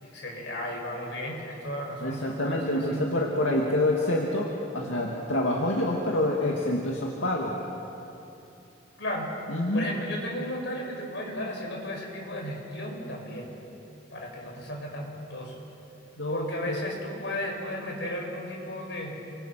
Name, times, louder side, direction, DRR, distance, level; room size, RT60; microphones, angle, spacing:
voice 1, 0.0-3.1 9.0-9.4 9.7-13.6 14.1-15.6 16.3-19.2, left 1 dB, 65° left, 0 dB, 6.4 m, -34 dB
voice 2, 2.0-7.5 9.5-10.0 16.2-16.9, left 1 dB, 85° left, -2 dB, 2.4 m, -27 dB
30.0 x 25.0 x 6.0 m, 2.9 s
head